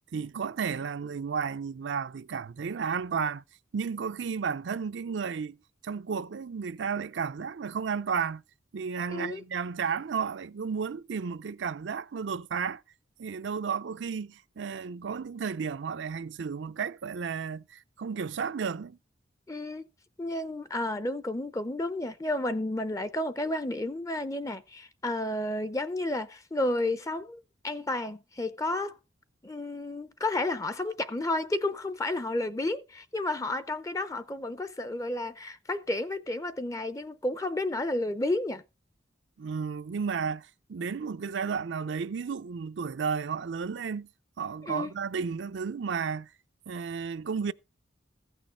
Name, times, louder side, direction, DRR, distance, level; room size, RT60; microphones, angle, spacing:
voice 1, 0.1-3.4 3.7-5.6 5.8-8.4 8.7-12.8 13.2-19.0 39.4-44.1 44.4-46.3 46.7-47.5, right 6 dB, 70° right, 0.4 m, -33 dB
voice 2, 9.1-9.4 19.5-19.9 20.2-28.9 29.4-38.6 44.6-44.9, left 2 dB, 15° left, 0.5 m, -31 dB
15.0 x 6.3 x 4.4 m
head